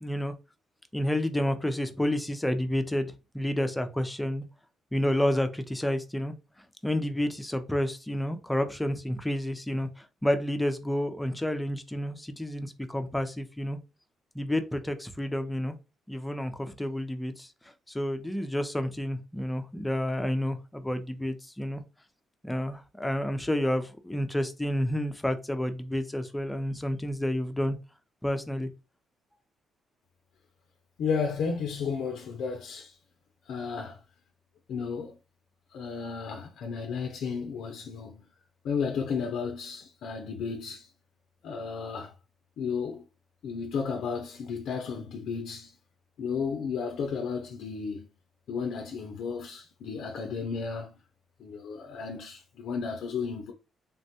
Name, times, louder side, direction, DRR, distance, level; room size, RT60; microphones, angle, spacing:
voice 1, 0.0-0.3 0.9-4.4 4.9-6.3 6.8-13.8 14.3-15.8 16.1-17.5 17.9-21.8 22.4-27.8 28.2-28.7, left 1 dB, 10° left, 0.5 m, -30 dB
voice 2, 31.0-33.0 33.5-34.0 34.7-35.2 35.7-38.2 38.6-40.9 41.4-42.2 42.6-43.0 43.4-45.7 46.2-48.1 48.5-51.0 51.4-53.5, left 5 dB, 75° left, 0.4 m, -33 dB
3.4 x 2.1 x 2.7 m
cardioid pair, 90°, 0 cm